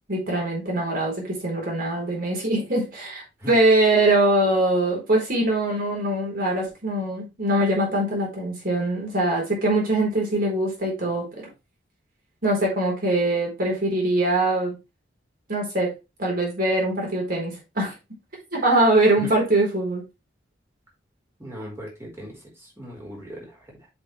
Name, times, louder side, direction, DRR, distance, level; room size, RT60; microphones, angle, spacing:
voice 1, 0.1-11.5 12.4-14.8 15.5-15.9 16.2-17.9 18.5-20.0, right 1 dB, 50° right, -1 dB, 4.3 m, -22 dB
voice 2, 21.4-23.9, right 1 dB, 15° right, -3 dB, 4.3 m, -39 dB
7.8 x 5.6 x 3.3 m, 0.25 s
head